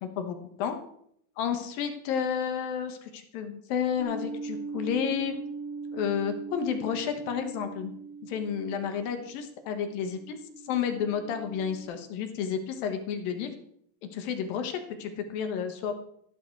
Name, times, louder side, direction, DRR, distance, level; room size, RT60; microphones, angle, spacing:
voice 1, 0.0-0.8 1.4-5.4 5.9-7.9 8.2-10.4 10.6-13.5 14.1-15.9, left 7 dB, 75° left, 6 dB, 3.0 m, -31 dB
sound 1, 4.0-11.8, right 3 dB, 45° left, 1.8 m, -40 dB
14.0 x 10.5 x 4.7 m, 0.70 s
omnidirectional pair, 4.2 m